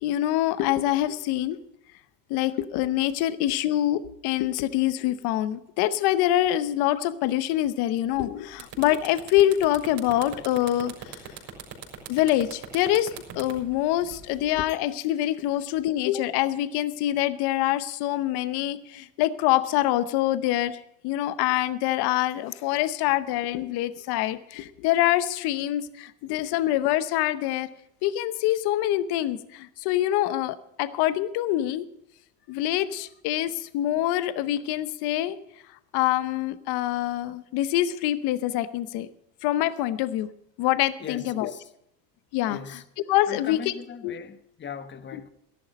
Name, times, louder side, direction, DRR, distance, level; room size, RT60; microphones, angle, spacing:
voice 1, 0.0-1.6 2.3-11.3 12.1-27.7 28.0-31.9 32.5-35.4 35.9-39.1 39.4-40.3 40.6-41.5 42.3-42.6 43.1-43.6 44.0-44.1, left 13 dB, 55° left, 0.9 m, -25 dB
sound 1, 8.1-8.2 8.5-14.6, right 8 dB, 50° right, 4.7 m, -40 dB
voice 2, 41.0-41.7 42.5-42.8 43.3-45.3, left 7 dB, 25° left, 1.0 m, -40 dB
13.0 x 11.5 x 5.2 m
supercardioid pair, 125°, 46 cm